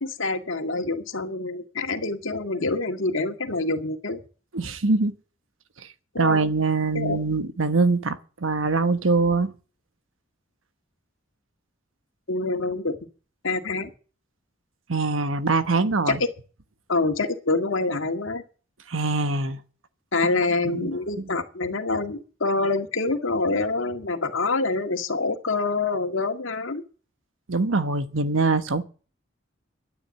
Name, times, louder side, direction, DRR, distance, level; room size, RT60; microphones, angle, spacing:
voice 1, 0.0-4.2 6.1-6.4 6.9-7.2 12.3-13.0 13.4-13.9 16.1-16.2 16.9-18.4 20.1-26.8, left 3 dB, 75° left, 1.9 m, -26 dB
voice 2, 4.5-5.1 6.2-9.5 14.9-16.2 18.9-19.6 20.7-20.9 27.5-28.8, right 3 dB, 80° right, 1.2 m, -23 dB
12.5 x 9.7 x 7.5 m
head